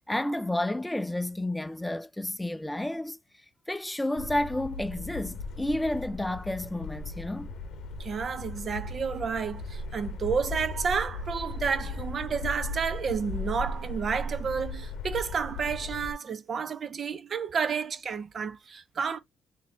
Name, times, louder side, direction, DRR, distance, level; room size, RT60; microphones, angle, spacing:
voice 1, 0.1-3.2 3.7-7.5, left 1 dB, 10° left, 0.4 m, -31 dB
sound 1, 4.2-16.1, left 2 dB, 80° left, 0.8 m, -37 dB
voice 2, 8.0-19.2, right 6 dB, 45° right, 0.5 m, -31 dB
4.0 x 2.6 x 2.7 m
cardioid pair, 90°, 0 cm